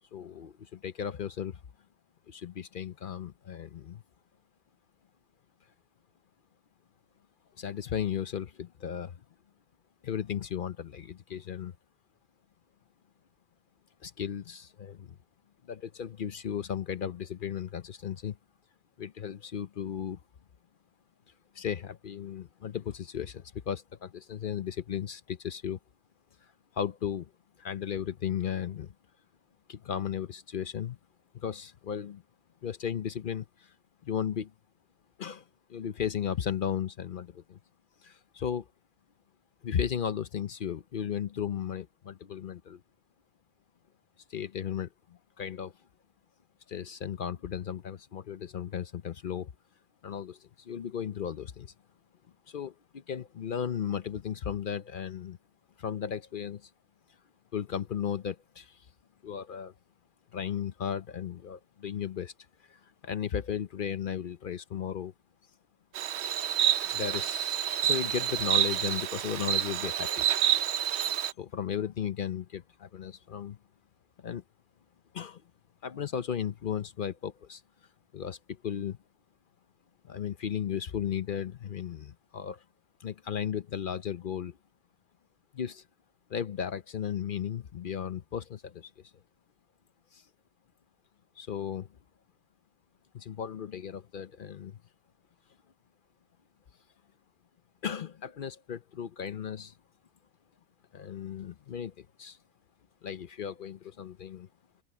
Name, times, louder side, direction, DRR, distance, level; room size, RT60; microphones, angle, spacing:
voice 1, 0.1-1.6 2.3-4.0 7.6-9.2 10.0-11.7 14.0-15.2 15.6-18.4 19.0-20.2 21.5-25.8 26.7-27.3 27.6-28.9 29.7-31.0 31.3-32.2 32.6-33.7 34.0-34.5 35.2-35.4 35.7-37.6 38.0-38.7 39.6-42.8 44.3-45.7 46.7-49.5 50.0-51.7 52.5-55.4 55.8-56.7 57.5-58.8 59.2-59.7 60.3-62.3 62.7-65.1 66.9-67.6 67.8-73.6 74.2-74.4 75.1-75.4 75.8-77.6 78.1-79.0 80.0-82.6 83.0-84.6 85.5-85.8 86.3-88.9 90.1-90.2 91.4-91.9 93.1-94.8 97.8-99.7 100.9-102.4 103.0-104.5, left 8 dB, 50° left, 0.6 m, -35 dB
Insect, 65.9-71.3, right 10 dB, 60° right, 0.8 m, -28 dB
omnidirectional pair, 1.4 m